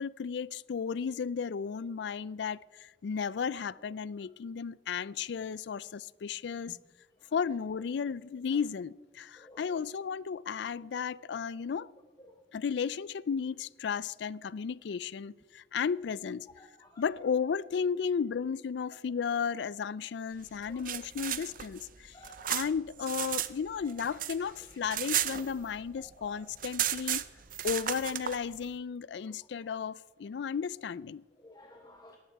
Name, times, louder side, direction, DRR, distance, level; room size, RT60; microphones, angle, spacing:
voice 1, 0.0-6.8 7.3-11.9 12.5-16.5 17.0-22.2 22.5-27.2 27.6-31.2, left 6 dB, 65° left, 0.4 m, -34 dB
voice 2, 16.6-17.0 20.7-20.8 22.1-22.5 26.2-26.4 31.4-32.2, left 1 dB, 20° left, 1.2 m, -54 dB
sound 1, 20.6-23.5 23.8-26.0 26.2-26.3 26.6-28.4, right 11 dB, 50° right, 0.7 m, -34 dB
18.5 x 14.0 x 4.7 m
head